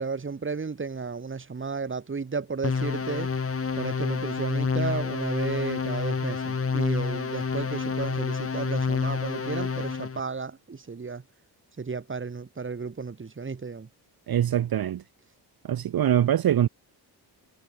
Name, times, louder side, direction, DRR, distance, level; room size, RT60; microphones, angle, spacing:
voice 1, 0.0-3.3 3.8-11.2 11.8-13.9, right 5 dB, 30° right, 3.3 m, -33 dB
sound 1, 2.6-10.2, left 5 dB, 35° left, 4.0 m, -28 dB
voice 2, 14.3-15.0 15.6-16.7, right 10 dB, 60° right, 1.3 m, -23 dB
wide cardioid pair, 130°, 41 cm